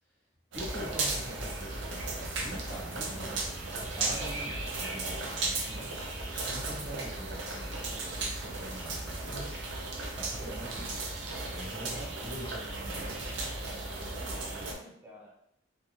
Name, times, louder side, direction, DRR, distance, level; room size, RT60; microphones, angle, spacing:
voice 1, 0.5-9.7 10.2-13.5, equal, 10° left, -9 dB, 1.3 m, -45 dB
sound 1, 0.5-14.7, right 2 dB, 75° right, 0.5 m, -35 dB
voice 2, 14.0-15.3, equal, 10° right, -4 dB, 0.6 m, -51 dB
2.7 x 2.5 x 2.4 m, 0.72 s
head